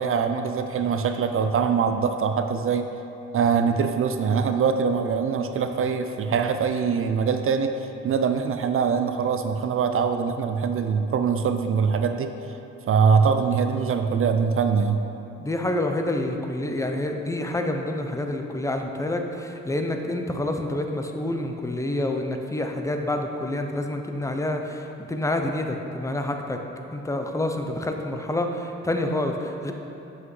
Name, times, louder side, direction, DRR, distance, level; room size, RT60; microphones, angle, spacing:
voice 1, 0.0-2.9 3.3-7.7 8.0-12.3 12.9-15.0, right 6 dB, 45° right, 7 dB, 0.4 m, -23 dB
voice 2, 15.4-26.6 26.9-29.7, left 1 dB, 10° left, 4 dB, 0.5 m, -28 dB
7.6 x 5.7 x 3.2 m, 2.9 s
cardioid pair, 90°, 30 cm